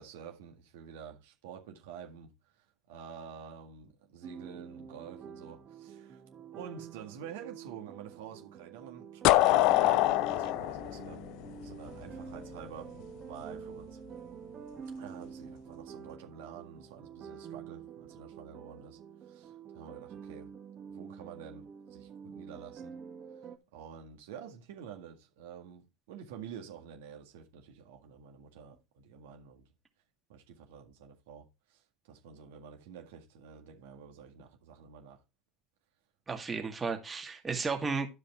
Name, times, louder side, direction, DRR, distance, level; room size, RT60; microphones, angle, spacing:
voice 1, 0.0-2.3 2.6-6.2 6.5-11.3 11.6-12.9 13.3-14.0 15.0-19.0 19.2-20.5 20.9-22.9 23.7-29.7 30.3-35.2, right 7 dB, 75° right, 1.9 m, -49 dB
sound 1, 4.2-23.6, right 7 dB, 40° right, 1.4 m, -47 dB
sound 2, 9.2-12.1, left 16 dB, 65° left, 0.5 m, -25 dB
voice 2, 36.3-38.2, right 4 dB, 25° right, 2.3 m, -34 dB
11.5 x 5.2 x 4.3 m
hypercardioid pair, 80°, 0 cm